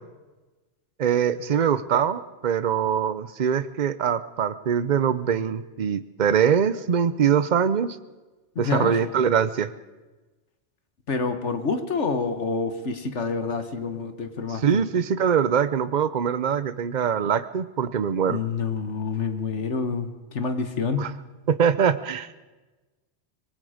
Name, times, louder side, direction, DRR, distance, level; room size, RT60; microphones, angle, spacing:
voice 1, 1.0-8.0 8.6-9.7 14.6-18.4 21.0-21.1 21.5-22.3, right 8 dB, 45° right, 13 dB, 0.8 m, -23 dB
voice 2, 8.5-9.0 11.1-14.8 18.3-21.1, left 4 dB, 75° left, 8 dB, 1.7 m, -27 dB
25.0 x 21.5 x 5.1 m, 1.2 s
omnidirectional pair, 1.2 m